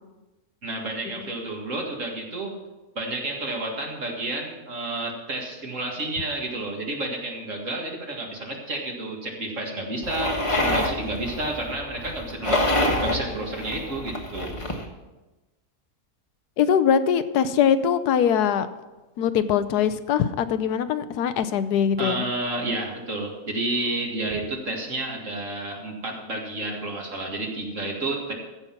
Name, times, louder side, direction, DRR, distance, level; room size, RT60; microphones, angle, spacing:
voice 1, 0.6-2.5 3.0-12.6 13.0-14.6 22.0-28.3, right 2 dB, 55° right, 0 dB, 2.3 m, -30 dB
sound 1, 10.0-14.9, left 1 dB, 20° left, 1.2 m, -27 dB
voice 2, 16.6-18.7 19.2-22.2, left 8 dB, 90° left, 12 dB, 1.2 m, -22 dB
15.0 x 5.7 x 5.9 m, 1.1 s
omnidirectional pair, 1.6 m